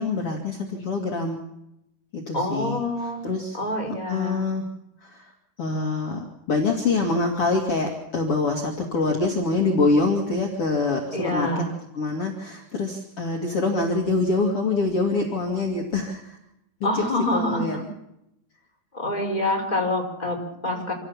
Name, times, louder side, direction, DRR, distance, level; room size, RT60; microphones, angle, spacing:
voice 1, 0.0-1.4 2.1-2.8 3.2-3.6 4.1-4.6 5.0-5.3 5.6-11.5 11.9-16.4 16.8-17.8 20.6-20.8, left 3 dB, 45° left, 1 dB, 3.1 m, -25 dB
voice 2, 2.3-3.2 3.5-4.4 11.1-11.7 16.8-17.8 18.9-20.9, left 1 dB, 10° left, 0 dB, 5.2 m, -26 dB
27.0 x 16.5 x 7.3 m, 0.84 s
omnidirectional pair, 3.7 m